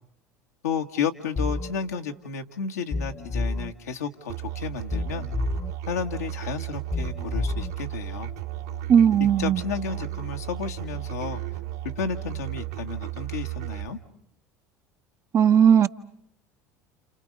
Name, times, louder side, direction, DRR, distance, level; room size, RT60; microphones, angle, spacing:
voice 1, 0.6-5.3 5.9-8.3 9.2-14.0, left 6 dB, 80° left, 1.7 m, -32 dB
sound 1, 1.4-1.7 2.9-3.7 4.9-5.7 6.9-7.7, left 2 dB, 35° left, 1.2 m, -29 dB
Musical instrument, 4.3-13.9, right 12 dB, 80° right, 2.9 m, -34 dB
voice 2, 8.9-9.6 15.3-15.9, right 8 dB, 40° right, 0.9 m, -17 dB
29.5 x 29.0 x 5.3 m
hypercardioid pair, 70°, 8 cm